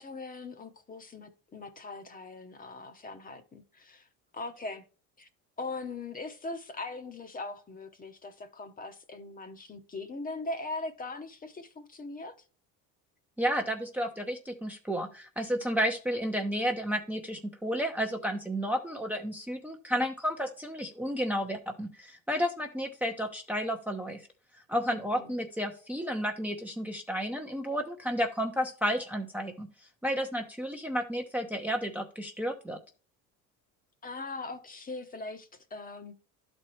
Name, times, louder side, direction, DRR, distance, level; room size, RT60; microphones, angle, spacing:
voice 1, 0.0-4.1 4.3-4.8 5.2-5.3 5.6-12.4 24.9-25.4 34.0-36.2, left 3 dB, 20° left, 1.0 m, -40 dB
voice 2, 13.4-24.2 24.7-29.7 30.0-32.8, equal, 5° right, 0.8 m, -32 dB
11.5 x 4.3 x 3.2 m
cardioid pair, 125°, 37 cm